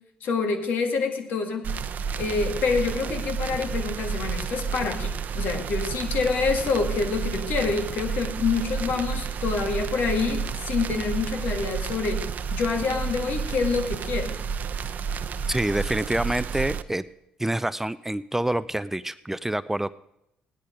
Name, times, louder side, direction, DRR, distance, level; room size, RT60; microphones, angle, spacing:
voice 1, 0.2-1.7 2.2-12.2 12.5-14.4, left 4 dB, 65° left, 4 dB, 2.0 m, -27 dB
sound 1, 1.6-16.8, right 6 dB, 55° right, 0.7 m, -31 dB
voice 2, 15.5-17.0 17.4-19.9, right 1 dB, 10° right, 16 dB, 0.4 m, -27 dB
16.5 x 10.5 x 5.1 m, 0.83 s
hypercardioid pair, 55°, 3 cm